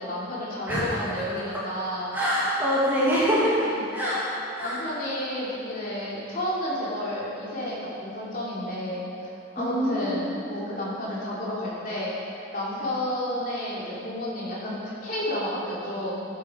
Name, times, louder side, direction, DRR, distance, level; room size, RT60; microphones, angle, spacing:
voice 1, 0.0-2.1 3.7-3.8 4.6-12.1 12.5-16.2, left 1 dB, 45° left, -7 dB, 3.0 m, -31 dB
voice 2, 2.1-4.2 4.5-4.8 9.6-10.4, equal, 10° right, -9 dB, 2.3 m, -25 dB
16.0 x 7.5 x 5.1 m, 2.7 s
head